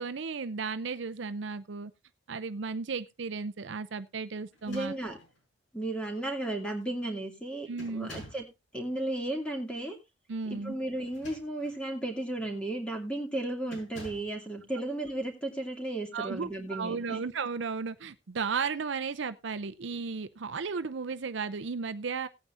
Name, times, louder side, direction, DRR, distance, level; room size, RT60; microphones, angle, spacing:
voice 1, 0.0-1.9 2.3-4.9 7.7-8.1 10.3-10.7 16.1-22.3, right 5 dB, 65° right, 12 dB, 0.6 m, -34 dB
sound 1, 4.5-5.4 6.3-6.4 6.8-7.1 7.8-8.5 11.0-11.8 12.4-12.6 13.7-14.4, left 1 dB, 65° left, 6.0 m, -49 dB
voice 2, 4.7-5.2 5.7-8.5 8.7-10.0 10.5-17.2, right 1 dB, 5° left, 2 dB, 2.4 m, -34 dB
18.0 x 9.0 x 2.6 m, 0.24 s
head